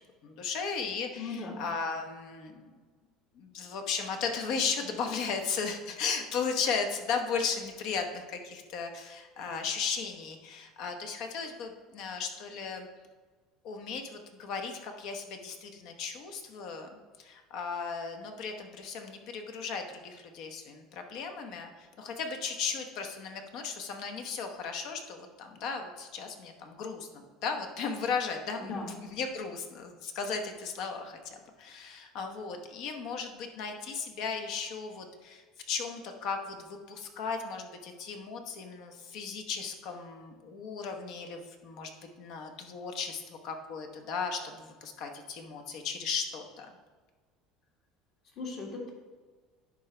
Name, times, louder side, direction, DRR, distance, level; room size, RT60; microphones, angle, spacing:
voice 1, 0.2-2.7 3.3-12.9 13.6-28.7 29.1-41.9 42.2-46.7, left 5 dB, 65° left, 5 dB, 1.0 m, -36 dB
voice 2, 1.2-1.6 28.6-28.9 48.4-48.9, left 3 dB, 50° left, -1 dB, 1.9 m, -37 dB
10.5 x 3.9 x 3.3 m, 1.4 s
supercardioid pair, 125°, 0 cm